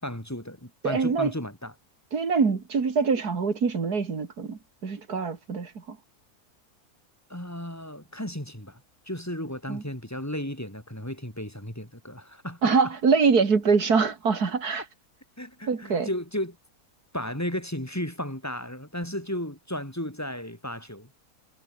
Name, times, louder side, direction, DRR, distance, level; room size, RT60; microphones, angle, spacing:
voice 1, 0.0-1.7 7.3-8.8 9.1-12.9 15.4-16.6 17.1-21.1, left 1 dB, 10° left, 6.2 m, -34 dB
voice 2, 0.8-1.3 2.1-6.0 9.7-9.8 12.6-14.8 15.7-16.1, right 5 dB, 80° right, 2.9 m, -24 dB
omnidirectional pair, 1.6 m